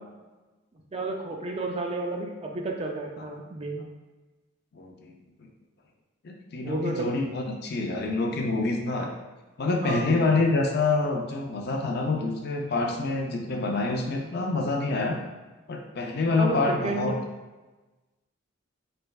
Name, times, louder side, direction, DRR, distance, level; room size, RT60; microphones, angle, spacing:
voice 1, 0.9-3.9 6.6-7.1 9.8-10.1 16.4-17.2, right 2 dB, 25° right, 1 dB, 0.3 m, -31 dB
voice 2, 4.8-5.1 6.2-9.1 9.6-15.2 15.7-17.1, left 3 dB, 50° left, 2 dB, 0.4 m, -26 dB
4.2 x 3.3 x 2.3 m, 1.2 s
head